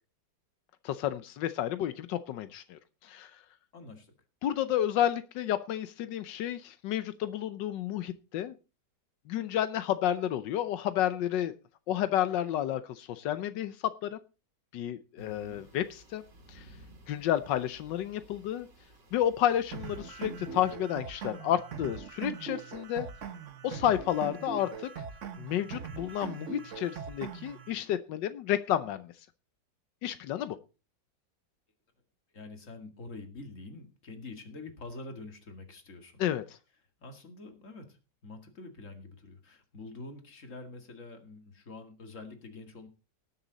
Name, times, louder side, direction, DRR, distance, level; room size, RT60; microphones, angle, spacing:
voice 1, 0.8-3.3 4.4-8.5 9.3-11.5 11.9-13.8 14.0-14.2 14.7-16.2 16.5-16.7 17.1-18.7 19.1-23.1 23.6-25.0 25.4-29.1 30.0-30.6 36.2-36.6, left 11 dB, 90° left, 12 dB, 1.4 m, -31 dB
voice 2, 3.7-4.1 15.2-15.7 32.3-36.2 37.0-42.9, left 3 dB, 45° left, 5 dB, 2.4 m, -46 dB
sound 1, 15.2-20.7, right 1 dB, 90° right, 3.4 m, -55 dB
sound 2, 19.7-27.7, right 6 dB, 50° right, 1.2 m, -41 dB
19.0 x 7.2 x 4.0 m, 0.31 s
omnidirectional pair, 1.9 m